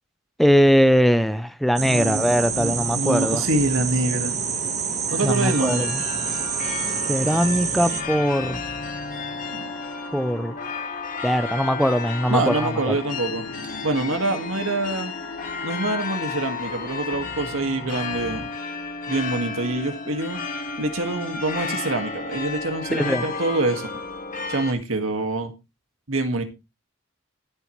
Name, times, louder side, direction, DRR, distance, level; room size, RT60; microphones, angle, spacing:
voice 1, 0.4-3.4 5.2-5.9 7.1-8.6 10.1-10.5 11.2-13.0 22.9-23.2, equal, ahead, 0.6 m, -21 dB
sound 1, 1.8-8.0, right 6 dB, 35° right, 1.5 m, -27 dB
voice 2, 1.8-4.4 5.1-5.9 9.5-9.7 12.3-13.4 13.8-15.1 15.6-18.5 19.1-20.4 20.8-23.9 24.5-25.5 26.1-26.4, right 2 dB, 80° right, 2.0 m, -26 dB
sound 2, 2.4-18.5, left 3 dB, 70° left, 7.2 m, -40 dB
sound 3, 5.1-24.7, left 4 dB, 40° left, 1.9 m, -33 dB
14.5 x 8.3 x 3.2 m
head